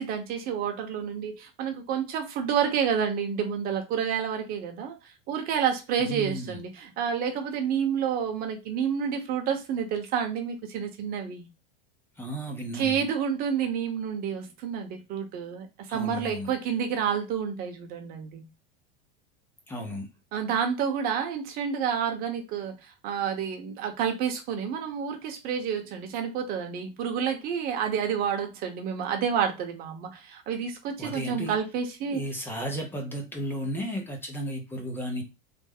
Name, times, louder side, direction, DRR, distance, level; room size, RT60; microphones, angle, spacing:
voice 1, 0.0-5.0 5.3-11.5 12.7-18.5 20.3-32.2, right 7 dB, 30° right, 0.7 m, -29 dB
voice 2, 6.0-6.6 12.2-13.1 15.9-16.5 19.7-20.1 31.0-31.6 32.1-35.2, equal, 5° left, 0.4 m, -34 dB
3.3 x 2.0 x 3.4 m
supercardioid pair, 155°, 29 cm